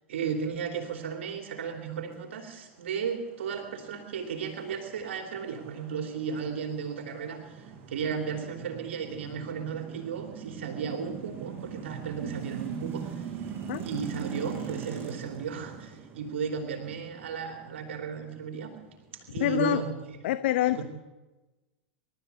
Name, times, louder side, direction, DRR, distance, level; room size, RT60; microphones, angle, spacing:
voice 1, 0.1-13.4 13.8-18.7 19.3-20.2 20.7-20.8, right 6 dB, 80° right, 4 dB, 3.0 m, -35 dB
sound 1, 3.2-19.9, right 7 dB, 40° right, 5.9 m, -42 dB
voice 2, 19.4-19.8 20.2-20.8, left 14 dB, 70° left, 11 dB, 1.0 m, -26 dB
27.5 x 13.0 x 8.3 m, 1.1 s
hypercardioid pair, 105°, 6 cm